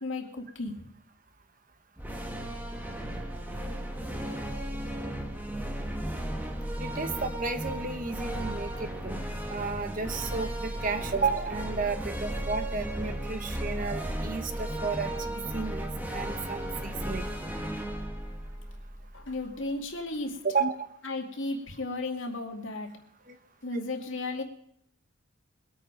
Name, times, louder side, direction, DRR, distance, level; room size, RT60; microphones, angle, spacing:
voice 1, 0.0-0.7 19.1-20.3 21.0-22.9 23.6-24.4, left 2 dB, 75° left, 3 dB, 2.4 m, -34 dB
sound 1, 2.0-19.4, right 1 dB, 10° right, 1.4 m, -35 dB
voice 2, 6.8-9.2 9.5-17.3 20.4-20.8 23.3-23.4 23.7-23.8, right 4 dB, 40° right, 8 dB, 1.1 m, -33 dB
22.0 x 8.5 x 5.2 m, 0.71 s
head